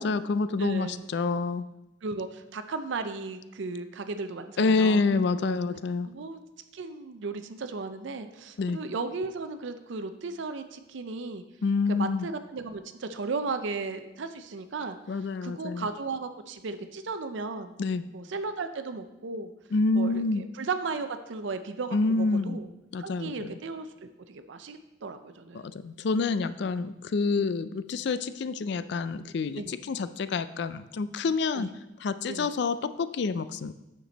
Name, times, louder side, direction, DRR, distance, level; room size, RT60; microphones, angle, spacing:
voice 1, 0.0-1.7 4.6-6.1 8.6-8.8 11.6-12.3 15.1-15.9 17.8-18.1 19.7-20.4 21.9-22.6 22.9-23.5 25.5-31.7 32.0-33.7, left 4 dB, 55° left, 13 dB, 0.3 m, -27 dB
voice 2, 0.6-1.0 2.0-5.6 6.1-6.4 6.7-11.4 11.9-15.0 15.4-17.7 18.1-19.5 19.9-22.7 23.0-25.7 29.6-29.7 31.5-31.7 32.3-32.5, right 4 dB, 65° right, 9 dB, 0.5 m, -35 dB
8.6 x 6.0 x 4.0 m, 0.97 s
head